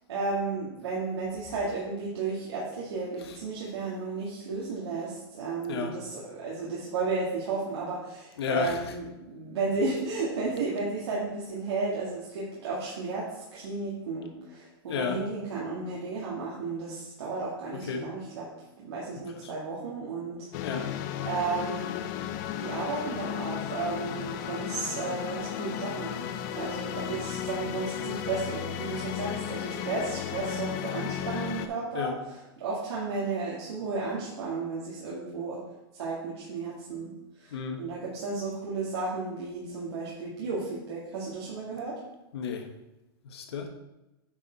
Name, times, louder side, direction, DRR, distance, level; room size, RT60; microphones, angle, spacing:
voice 1, 0.1-18.5 18.8-20.5 21.3-22.0 22.6-26.2 26.5-35.6 35.9-37.1 37.4-42.0, right 3 dB, 85° right, -6 dB, 2.0 m, -33 dB
voice 2, 8.4-8.9 14.9-15.2 17.7-18.1 19.3-19.5 20.6-20.9 31.9-32.2 37.5-37.8 42.3-42.7 43.3-43.7, left 5 dB, 80° left, 5 dB, 1.2 m, -32 dB
sound 1, 20.5-31.7, left 10 dB, 45° left, 0.6 m, -34 dB
8.8 x 4.2 x 4.5 m, 0.96 s
hypercardioid pair, 145°, 13 cm